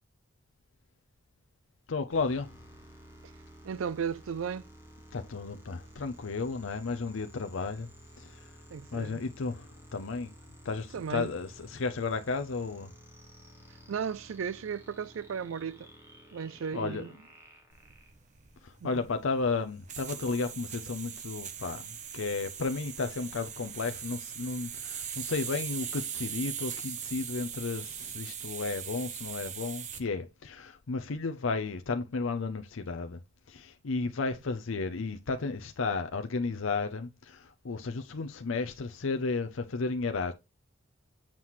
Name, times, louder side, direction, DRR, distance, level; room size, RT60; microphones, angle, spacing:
voice 1, 1.9-2.5 5.1-7.9 8.2-8.5 8.9-10.3 10.6-12.9 16.7-17.0 18.6-33.2 33.5-40.3, left 4 dB, 75° left, 0.6 m, -33 dB
sound 1, 2.1-18.6, equal, 10° right, 1.7 m, -53 dB
voice 2, 3.6-4.7 8.7-9.3 10.9-11.3 13.9-15.9 16.3-17.1 18.8-19.0, right 7 dB, 80° right, 0.4 m, -35 dB
sound 2, 17.7-30.1, right 8 dB, 35° right, 0.7 m, -40 dB
7.5 x 5.7 x 3.0 m
head